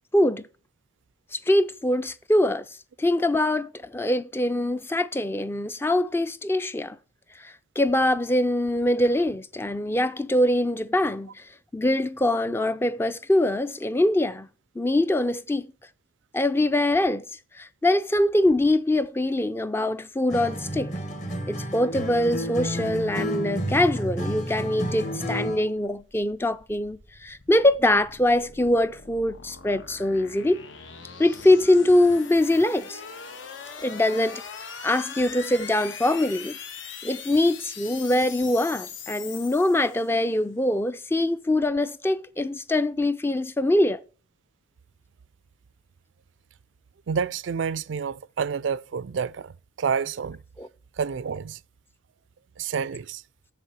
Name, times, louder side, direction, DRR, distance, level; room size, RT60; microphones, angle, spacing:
voice 1, 0.1-0.5 1.3-2.7 3.0-7.0 7.4-11.4 11.7-14.5 14.8-15.7 16.3-17.2 17.5-20.9 21.5-30.6 31.2-33.0 33.8-36.6 37.0-44.0 50.6-50.7, left 1 dB, 10° left, 0.4 m, -23 dB
Acoustic guitar, 20.3-25.7, equal, 40° left, 1.3 m, -31 dB
sound 1, 26.0-40.3, left 6 dB, 80° left, 1.3 m, -41 dB
voice 2, 47.1-49.5 49.8-50.4 51.0-51.6 52.6-53.2, right 6 dB, 75° right, 0.4 m, -28 dB
7.3 x 6.7 x 6.0 m
head